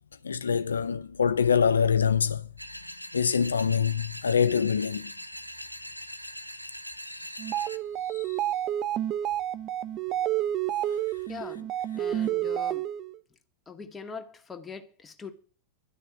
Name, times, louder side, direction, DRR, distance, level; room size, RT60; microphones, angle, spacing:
voice 1, 0.2-2.4 3.1-5.1 7.1-7.4 8.1-8.3, left 7 dB, 70° left, 0.7 m, -25 dB
sound 1, 2.6-7.8, equal, 90° left, 1.0 m, -41 dB
sound 2, 7.4-13.2, right 12 dB, 35° right, 0.9 m, -30 dB
voice 2, 11.3-11.7 11.9-12.9 13.7-15.3, left 5 dB, 15° left, 2.3 m, -42 dB
12.5 x 6.7 x 9.2 m
figure-of-eight pair, 90°, 0 cm